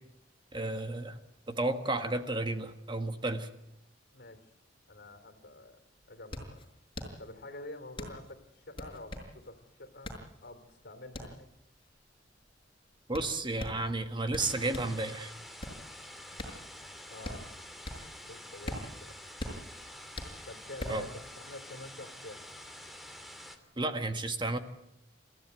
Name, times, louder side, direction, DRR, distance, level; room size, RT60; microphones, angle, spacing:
voice 1, 0.5-1.2 1.5-3.5 13.1-15.3 20.9-21.1 23.8-24.6, right 2 dB, 25° right, 7 dB, 1.7 m, -32 dB
voice 2, 4.9-6.7 7.2-10.1 10.4-11.5 17.1-17.5 18.2-19.2 20.5-22.5, left 2 dB, 60° left, 9 dB, 3.4 m, -47 dB
sound 1, 5.7-15.0 15.4-18.2 18.5-21.1, left 1 dB, 30° left, 6.1 m, -42 dB
sound 2, 14.4-23.6, left 1 dB, ahead, 2.7 m, -48 dB
29.0 x 15.0 x 9.2 m, 0.83 s
head